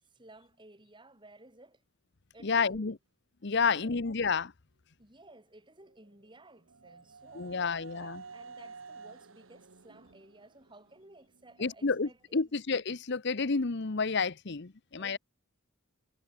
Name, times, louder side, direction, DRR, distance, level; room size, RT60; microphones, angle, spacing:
voice 1, 0.0-1.8 2.3-3.0 3.6-4.0 5.0-12.4 15.0-15.2, right 2 dB, 20° right, 4.2 m, -56 dB
voice 2, 2.4-3.0 3.4-4.5 7.3-8.2 11.6-15.2, left 4 dB, 55° left, 0.9 m, -30 dB
sound 1, 5.8-11.7, right 4 dB, 70° right, 1.3 m, -51 dB
head